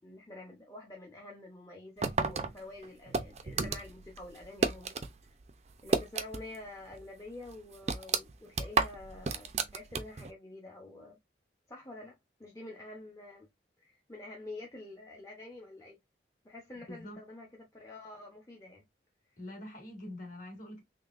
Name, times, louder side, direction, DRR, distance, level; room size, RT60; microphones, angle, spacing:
voice 1, 0.0-4.9 5.2-5.3 5.8-11.2 11.7-13.5 13.8-16.0 16.4-18.8, left 2 dB, 20° left, 0.7 m, -48 dB
sound 1, 2.0-5.1 5.4-6.6 6.9-7.0 7.5-10.3, right 4 dB, 35° right, 0.5 m, -32 dB
voice 2, 16.9-17.2 19.4-20.8, left 1 dB, 45° left, 1.8 m, -44 dB
3.7 x 3.3 x 2.4 m
head